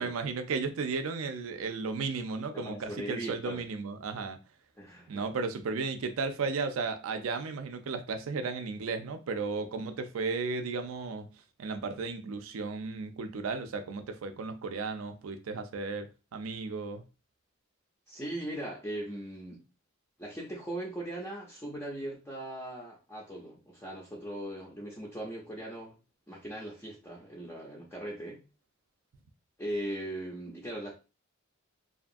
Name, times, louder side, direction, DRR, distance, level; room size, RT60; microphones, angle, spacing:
voice 1, 0.0-4.4 5.1-11.3 11.6-17.0, right 4 dB, 80° right, 0.4 m, -34 dB
voice 2, 2.5-3.6 4.8-5.3 18.1-19.6 20.2-25.9 26.3-28.4 29.6-30.9, right 1 dB, 10° left, 0.5 m, -39 dB
2.7 x 2.3 x 2.5 m
head